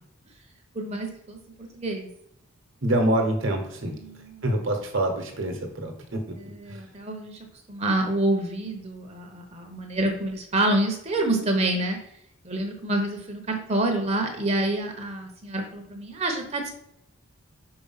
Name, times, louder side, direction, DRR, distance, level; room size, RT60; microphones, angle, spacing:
voice 1, 0.7-2.1 4.0-4.4 6.4-7.4 7.7-12.0 12.4-16.7, right 1 dB, 30° right, 4 dB, 0.9 m, -27 dB
voice 2, 2.8-4.0 4.4-6.4 6.7-6.8, right 1 dB, 60° right, 3 dB, 1.2 m, -26 dB
4.9 x 4.8 x 5.6 m, 0.74 s
head